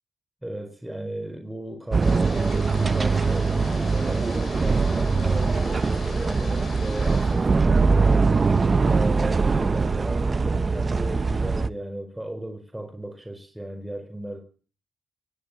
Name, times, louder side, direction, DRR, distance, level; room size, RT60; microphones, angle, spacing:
voice 1, 0.4-8.5 8.8-14.4, right 1 dB, 5° right, 4.9 m, -35 dB
sound 1, 1.9-11.7, right 4 dB, 40° right, 1.2 m, -22 dB
sound 2, 2.0-7.5, left 5 dB, 60° left, 7.0 m, -41 dB
20.0 x 16.0 x 9.0 m
cardioid pair, 65°, 0 cm